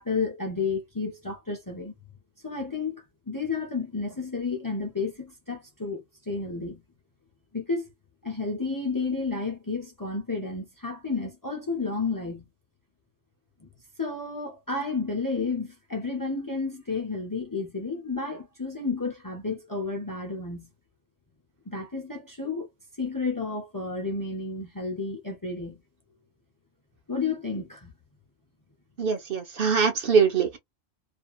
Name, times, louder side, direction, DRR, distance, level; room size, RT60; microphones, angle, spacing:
voice 1, 0.0-1.9 2.4-6.8 7.5-7.9 8.2-12.5 13.6-13.7 14.0-20.7 21.7-22.7 23.0-25.8 27.1-27.9, left 4 dB, 25° left, 0.6 m, -31 dB
voice 2, 29.0-30.6, right 6 dB, 60° right, 0.9 m, -23 dB
2.8 x 2.5 x 2.3 m
omnidirectional pair, 1.1 m